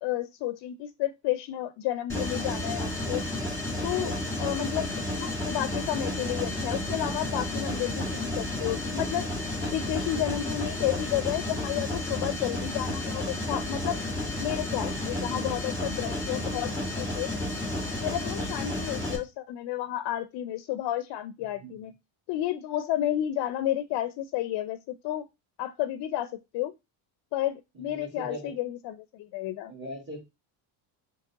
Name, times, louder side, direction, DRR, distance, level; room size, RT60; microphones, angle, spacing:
voice 1, 0.0-3.2 3.8-4.1 4.4-9.3 9.6-14.0 14.4-16.7 17.0-17.3 18.0-21.9 22.3-25.3 25.6-26.7 27.3-29.7, left 13 dB, 60° left, 11 dB, 0.5 m, -31 dB
Mechanisms, 2.1-19.2, left 1 dB, 5° left, 1.5 m, -32 dB
voice 2, 21.5-21.9 27.7-28.6 29.7-30.2, right 1 dB, 25° right, 0 dB, 1.9 m, -40 dB
3.8 x 3.0 x 3.4 m, 0.23 s
cardioid pair, 110°, 45 cm